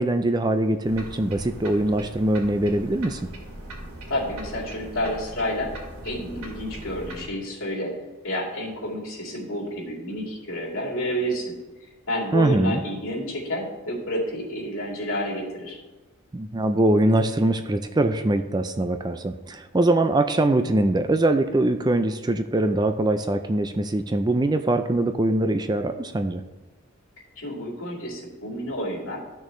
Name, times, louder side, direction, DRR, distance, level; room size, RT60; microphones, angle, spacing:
voice 1, 0.0-3.2 12.3-12.8 16.3-26.4, right 1 dB, 20° right, 8 dB, 0.4 m, -22 dB
sound 1, 0.8-7.3, right 1 dB, 85° right, 2.5 m, -40 dB
voice 2, 4.1-5.7 6.0-7.9 8.2-11.5 12.1-15.8 27.4-29.2, equal, 65° left, -4 dB, 3.1 m, -29 dB
14.0 x 6.4 x 3.1 m, 1.2 s
head